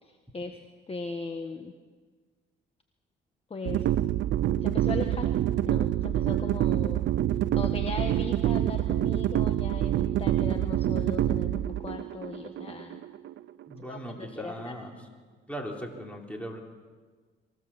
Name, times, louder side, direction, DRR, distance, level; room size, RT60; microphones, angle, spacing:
voice 1, 0.0-0.6 0.9-1.7 3.5-3.8 4.6-5.3 5.6-7.1 7.5-13.0 13.9-14.7, left 4 dB, 30° left, 5 dB, 1.5 m, -38 dB
sound 1, 3.6-13.7, right 12 dB, 70° right, 0.6 m, -27 dB
voice 2, 13.7-15.0 15.5-16.6, equal, 5° left, 1 dB, 3.7 m, -38 dB
23.5 x 16.5 x 7.4 m, 1.5 s
cardioid pair, 90°, 20 cm